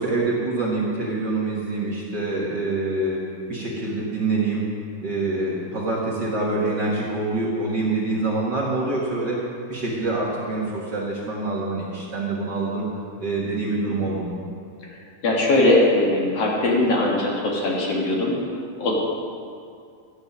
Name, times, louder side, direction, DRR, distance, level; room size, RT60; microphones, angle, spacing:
voice 1, 0.0-4.7 5.0-9.4 9.7-12.8 13.2-14.4, right 2 dB, 45° right, -5 dB, 1.9 m, -25 dB
voice 2, 14.9-18.4 18.8-18.9, left 2 dB, 60° left, -3 dB, 2.6 m, -21 dB
13.5 x 9.0 x 5.5 m, 2.3 s
omnidirectional pair, 3.4 m